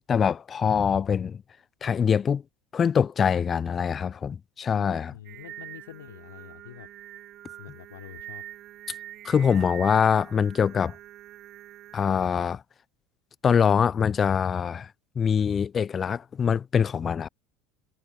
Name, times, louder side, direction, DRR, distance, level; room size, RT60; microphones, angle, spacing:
voice 1, 0.1-1.4 1.8-2.4 2.7-5.1 9.2-10.9 11.9-12.6 13.4-14.9 15.2-17.3, left 7 dB, 30° left, 0.4 m, -24 dB
voice 2, 5.1-6.9 7.6-8.4, left 13 dB, 75° left, 3.7 m, -46 dB
Singing, 5.2-12.3, right 13 dB, 50° right, 3.9 m, -44 dB
figure-of-eight pair, 70°, 0 cm